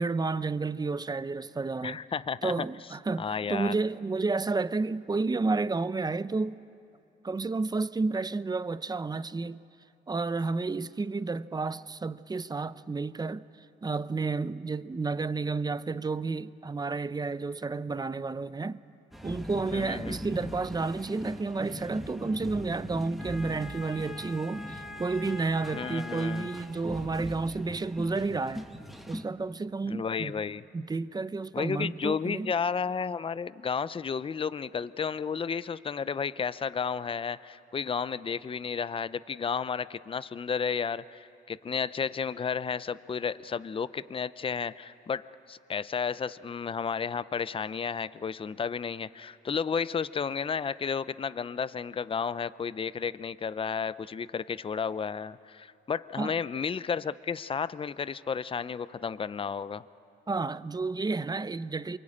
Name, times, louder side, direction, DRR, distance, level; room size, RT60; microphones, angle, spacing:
voice 1, 0.0-2.0 2.4-6.6 7.2-9.6 10.1-13.4 13.8-18.8 19.2-28.7 29.1-30.3 30.7-32.5 56.2-56.3 60.3-62.0, right 3 dB, 20° right, 0.7 m, -31 dB
voice 2, 1.8-2.7 3.2-3.8 19.7-20.2 25.7-26.5 29.9-30.6 31.5-59.8, left 6 dB, 25° left, 0.6 m, -32 dB
sound 1, 19.1-29.2, equal, ahead, 1.6 m, -40 dB
27.5 x 23.5 x 8.7 m
cardioid pair, 90°, 20 cm